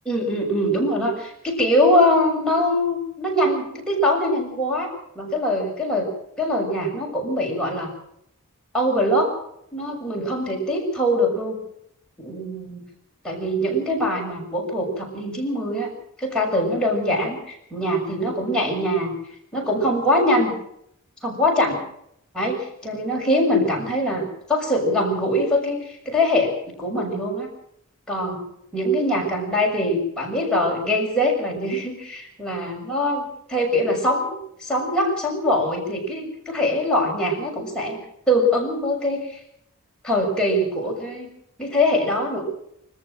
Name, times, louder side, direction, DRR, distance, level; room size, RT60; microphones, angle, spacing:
voice 1, 0.0-4.9 5.1-6.1 6.4-7.9 8.7-9.4 9.7-11.6 12.2-12.8 13.2-15.9 16.2-19.1 19.5-20.5 21.2-21.8 22.3-27.5 28.1-28.4 28.7-38.0 38.3-39.4 40.0-41.3 41.6-42.4, left 1 dB, 5° left, -3 dB, 6.8 m, -23 dB
25.0 x 14.5 x 7.9 m, 0.73 s
head